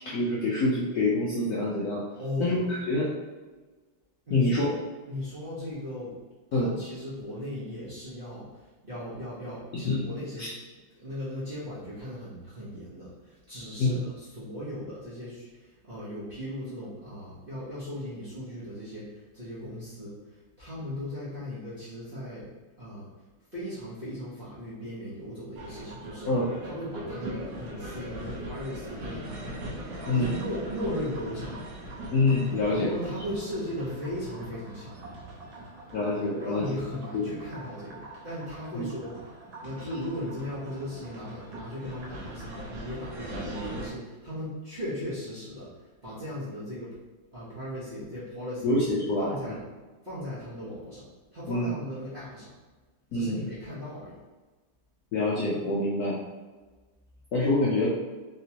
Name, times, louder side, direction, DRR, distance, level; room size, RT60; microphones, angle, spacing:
voice 1, 0.0-2.0 2.4-3.1 4.3-4.7 6.5-6.7 9.7-10.0 10.4-10.5 13.8-13.9 26.3-26.5 30.1-30.3 32.1-32.9 35.9-36.8 37.1-37.3 38.7-38.8 48.6-49.3 51.5-51.7 53.1-53.5 55.1-56.2 57.3-57.9, left 2 dB, 75° left, -6 dB, 0.9 m, -26 dB
voice 2, 2.2-2.6 4.3-4.7 5.1-6.2 6.5-10.5 10.9-22.5 22.8-23.1 23.5-26.3 26.6-29.5 30.1-31.6 32.7-34.9 36.4-39.3 39.6-47.0 47.3-48.7 49.2-49.6 50.0-52.5 53.1-54.2, equal, 45° right, -12 dB, 0.7 m, -37 dB
sound 1, 25.6-43.9, right 1 dB, 65° right, 1.1 m, -41 dB
3.4 x 2.9 x 2.8 m, 1.3 s
omnidirectional pair, 2.2 m